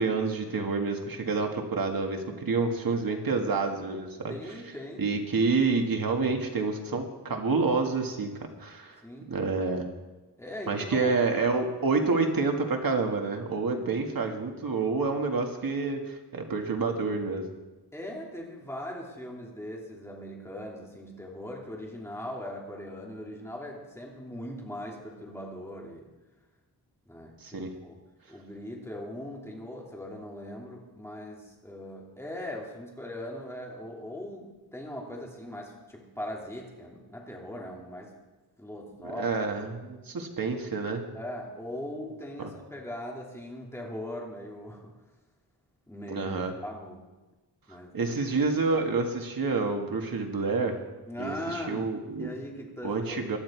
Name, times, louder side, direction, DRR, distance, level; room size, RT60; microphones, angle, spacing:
voice 1, 0.0-4.4 5.0-9.0 9.3-9.9 10.7-17.5 27.4-27.8 39.0-41.1 42.4-42.5 46.1-46.5 47.9-50.8 51.2-52.3 52.8-53.4, right 4 dB, 60° right, 3 dB, 1.9 m, -28 dB
voice 2, 4.3-5.1 9.0-9.3 10.4-11.1 17.9-26.1 27.1-27.9 28.3-38.2 38.6-39.3 41.1-44.9 45.9-46.3 46.6-47.1 47.7-48.1 51.1-51.9 52.2-53.3, left 1 dB, 5° left, -2 dB, 3.0 m, -40 dB
18.0 x 12.0 x 4.6 m, 1.2 s
wide cardioid pair, 125°, 40 cm